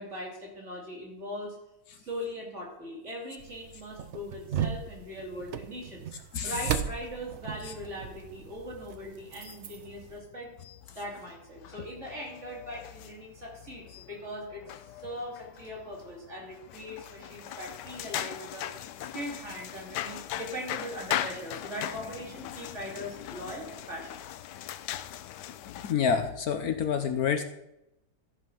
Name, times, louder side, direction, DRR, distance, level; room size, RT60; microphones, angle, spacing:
voice 1, 0.0-1.6 2.0-6.0 6.4-10.5 10.9-14.6 15.0-18.7 19.0-24.3, equal, 45° right, -4 dB, 3.5 m, -40 dB
sound 1, 3.4-10.2, right 9 dB, 60° right, 0.7 m, -37 dB
sound 2, 7.5-25.9, left 11 dB, 90° left, 1.2 m, -40 dB
voice 2, 25.8-27.4, left 7 dB, 65° left, 7 dB, 1.2 m, -27 dB
13.0 x 5.6 x 5.6 m, 0.86 s
omnidirectional pair, 1.8 m